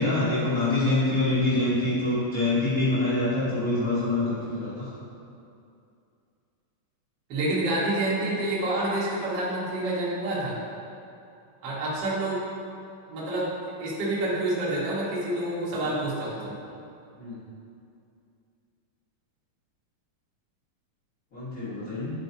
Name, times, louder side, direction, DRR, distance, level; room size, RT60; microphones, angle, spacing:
voice 1, 0.0-4.9 17.2-17.3 21.3-22.1, left 2 dB, 90° left, -13 dB, 0.7 m, -25 dB
voice 2, 7.3-10.6 11.6-12.4 13.1-13.5 13.8-16.5, right 1 dB, 85° right, -7 dB, 1.0 m, -28 dB
9.5 x 4.5 x 2.7 m, 2.6 s
omnidirectional pair, 4.2 m